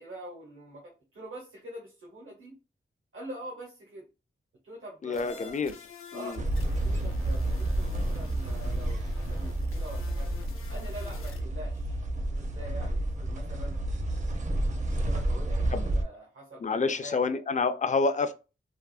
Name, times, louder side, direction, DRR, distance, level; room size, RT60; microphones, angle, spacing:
voice 1, 0.0-2.5 3.1-4.0 4.6-5.5 6.1-6.4 6.6-10.3 10.7-12.0 12.3-13.8 14.9-17.2, right 1 dB, 80° right, 1.0 m, -44 dB
voice 2, 5.0-5.7 6.1-6.4 15.7-15.9 16.6-18.3, left 4 dB, 35° left, 0.4 m, -28 dB
sound 1, 5.1-11.4, left 6 dB, 90° left, 0.6 m, -49 dB
sound 2, 6.4-16.0, right 1 dB, 35° right, 0.5 m, -30 dB
3.3 x 2.0 x 2.4 m
wide cardioid pair, 85°, 21 cm